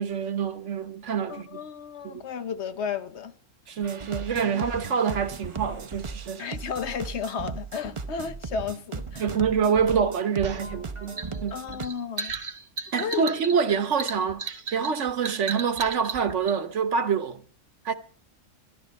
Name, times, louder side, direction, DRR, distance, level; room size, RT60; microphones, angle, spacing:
voice 1, 0.0-1.6 2.0-2.2 3.7-6.4 9.2-11.6 12.9-14.4 14.7-17.4 17.8-17.9, right 6 dB, 70° right, 1.3 m, -26 dB
voice 2, 1.3-3.3 4.5-4.7 6.4-9.2 11.5-12.3 13.0-13.3, left 6 dB, 60° left, 1.1 m, -33 dB
sound 1, 3.8-11.9, right 4 dB, 30° right, 0.6 m, -37 dB
sound 2, 10.4-16.6, right 4 dB, 50° right, 1.2 m, -35 dB
13.5 x 11.5 x 5.2 m
omnidirectional pair, 1.3 m